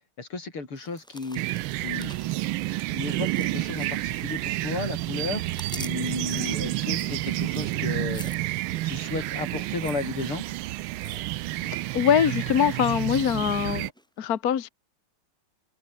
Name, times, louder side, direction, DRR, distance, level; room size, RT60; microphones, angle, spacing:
voice 1, 0.2-2.1 2.9-5.5 5.8-8.2 8.8-10.4, left 3 dB, 85° left, 6.0 m, -34 dB
sound 1, 0.8-4.6 4.8-11.8 12.0-12.4 12.8-13.5 14.0-14.1, equal, ahead, 4.9 m, -47 dB
sound 2, 1.4-13.9, right 17 dB, 75° right, 1.4 m, -30 dB
voice 2, 11.6-13.9 14.2-14.7, left 9 dB, 50° left, 1.5 m, -23 dB
omnidirectional pair, 2.3 m